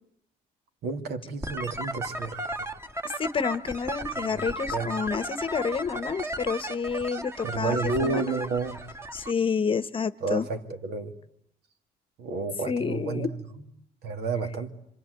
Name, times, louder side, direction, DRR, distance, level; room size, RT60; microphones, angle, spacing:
voice 1, 0.8-2.4 4.2-4.9 7.4-8.8 10.2-11.1 12.2-13.3 13.5-13.6 14.0-14.7, right 4 dB, 70° right, 2.5 m, -31 dB
sound 1, 1.4-9.3, right 1 dB, 15° right, 1.6 m, -35 dB
voice 2, 3.0-8.4 9.1-10.5 12.7-13.3, left 5 dB, 30° left, 1.0 m, -29 dB
27.0 x 25.5 x 8.0 m
cardioid pair, 110°, 17 cm